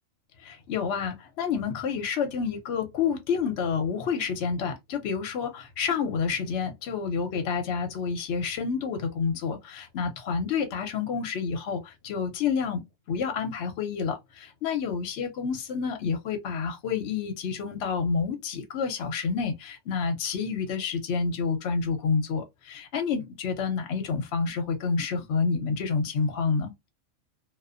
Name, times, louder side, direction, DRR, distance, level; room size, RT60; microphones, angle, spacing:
voice 1, 0.4-26.7, left 5 dB, 65° left, 0.8 m, -29 dB
2.4 x 2.3 x 2.4 m
omnidirectional pair, 1.3 m